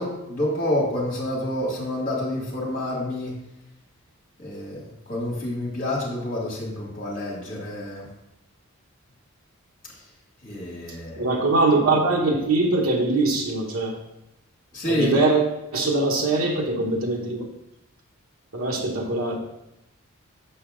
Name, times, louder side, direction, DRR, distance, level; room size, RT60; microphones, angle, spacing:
voice 1, 0.0-3.3 4.4-4.8 5.1-8.1 10.4-11.3 14.7-15.2, left 1 dB, 40° left, -3 dB, 2.4 m, -28 dB
voice 2, 11.2-14.0 14.9-17.4 18.5-19.4, right 2 dB, 70° right, 0 dB, 1.1 m, -22 dB
6.8 x 5.8 x 3.7 m, 0.87 s
head